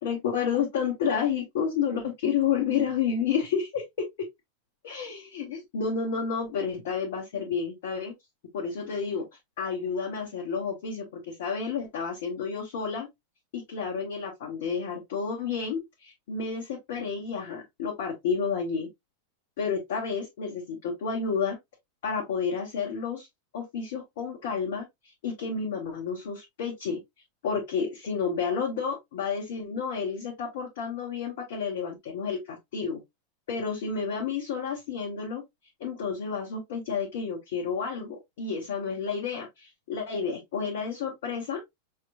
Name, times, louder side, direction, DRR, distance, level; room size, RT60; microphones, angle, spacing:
voice 1, 0.0-4.0 4.8-8.1 8.5-9.2 9.6-13.1 13.5-18.9 19.6-21.6 22.0-23.3 23.5-24.8 25.2-27.0 27.4-33.0 33.5-35.4 35.8-41.6, left 6 dB, 55° left, 1.3 m, -30 dB
5.6 x 3.1 x 2.4 m
figure-of-eight pair, 90°, 0 cm